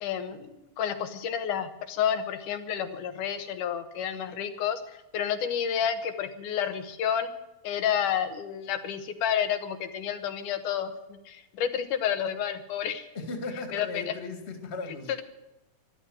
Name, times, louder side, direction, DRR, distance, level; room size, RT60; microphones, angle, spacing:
voice 1, 0.0-0.4 0.8-4.8 5.1-7.3 7.6-13.1 13.7-14.1, left 8 dB, 90° left, 8 dB, 2.8 m, -30 dB
voice 2, 13.1-15.2, left 3 dB, 25° left, 6 dB, 2.0 m, -37 dB
14.0 x 12.0 x 7.7 m, 0.93 s
omnidirectional pair, 3.5 m